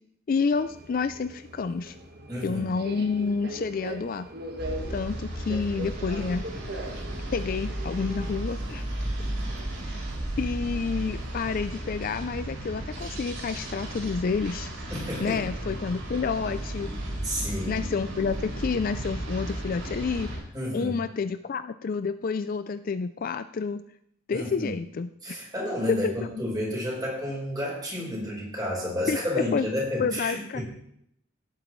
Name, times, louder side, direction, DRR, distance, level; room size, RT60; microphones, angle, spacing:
voice 1, 0.3-2.0 2.4-4.3 4.9-6.5 7.3-8.8 9.8-9.9 10.4-14.7 15.2-16.9 17.7-20.3 20.7-23.8 24.3-25.1 25.9-26.3 29.1-29.7 30.0-30.6, left 5 dB, 40° left, 11 dB, 0.3 m, -29 dB
Subway metro underground, 0.5-8.5, right 1 dB, 45° right, 1.4 m, -40 dB
voice 2, 2.3-2.7 14.9-15.7 17.2-17.8 20.5-21.0 24.3-24.7 25.2-30.6, left 1 dB, 20° right, -4 dB, 4.6 m, -31 dB
sound 1, 4.6-20.4, right 1 dB, 65° right, 4.2 m, -34 dB
17.0 x 9.0 x 3.2 m, 0.73 s
head